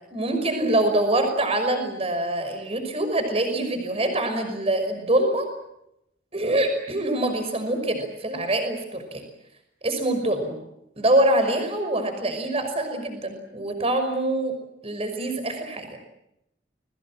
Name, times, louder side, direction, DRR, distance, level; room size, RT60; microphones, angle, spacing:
voice 1, 0.1-5.5 6.3-9.2 9.8-10.6 11.0-14.5 14.8-15.9, right 1 dB, 35° right, 7 dB, 5.7 m, -24 dB
30.0 x 22.0 x 7.5 m, 0.82 s
head